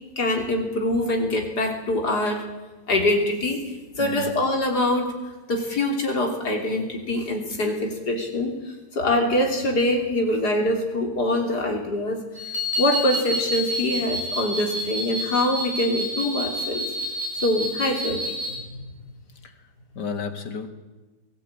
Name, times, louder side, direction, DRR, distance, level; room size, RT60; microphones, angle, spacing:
voice 1, 0.2-2.4 2.9-3.6 4.0-5.1 5.5-12.5 12.8-16.8 17.4-18.3, left 1 dB, 75° left, 2 dB, 3.9 m, -24 dB
voice 2, 4.0-4.4 19.4-19.6 19.9-20.7, left 6 dB, 90° left, 8 dB, 2.5 m, -32 dB
sound 1, 12.4-18.6, equal, 20° left, 6.6 m, -29 dB
22.0 x 15.5 x 9.0 m, 1.2 s
omnidirectional pair, 1.8 m